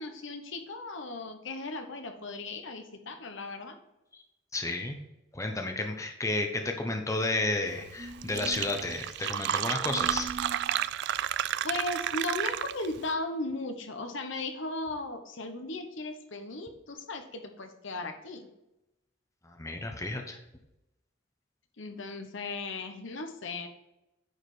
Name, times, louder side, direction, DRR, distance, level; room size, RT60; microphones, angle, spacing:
voice 1, 0.0-3.8 11.6-18.5 21.8-23.7, left 2 dB, 70° left, 6 dB, 1.1 m, -36 dB
voice 2, 4.5-5.0 5.3-10.3 19.4-20.4, left 2 dB, 15° left, 3 dB, 0.9 m, -32 dB
Fill (with liquid), 7.9-8.0 8.2-13.0, right 11 dB, 60° right, 0.3 m, -31 dB
sound 1, 8.0-8.7 9.8-10.6, right 2 dB, 30° right, 1.9 m, -41 dB
9.6 x 4.8 x 4.9 m, 0.92 s
head